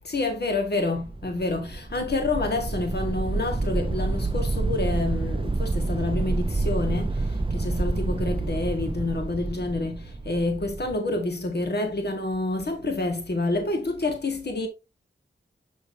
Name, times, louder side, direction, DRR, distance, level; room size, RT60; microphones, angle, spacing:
voice 1, 0.0-14.7, left 2 dB, 60° left, 1.8 m, -28 dB
sound 1, 1.0-11.0, right 2 dB, 25° right, 0.7 m, -28 dB
6.7 x 6.3 x 2.7 m
cardioid pair, 50°, 20 cm